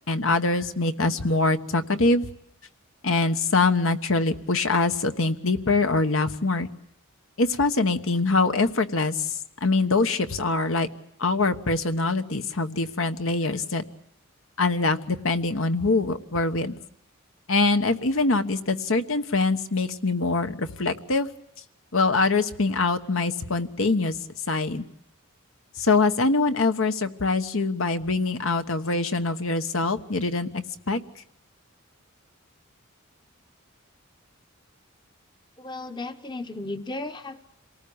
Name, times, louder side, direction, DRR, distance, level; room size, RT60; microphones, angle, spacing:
voice 1, 0.1-2.3 3.0-6.7 7.4-10.9 11.2-13.8 14.6-16.7 17.5-21.3 21.9-24.2 24.5-24.9 25.8-31.0, left 3 dB, 65° left, 8 dB, 1.3 m, -24 dB
voice 2, 35.6-37.4, left 2 dB, 20° left, 8 dB, 1.0 m, -35 dB
27.5 x 19.0 x 8.7 m, 0.80 s
head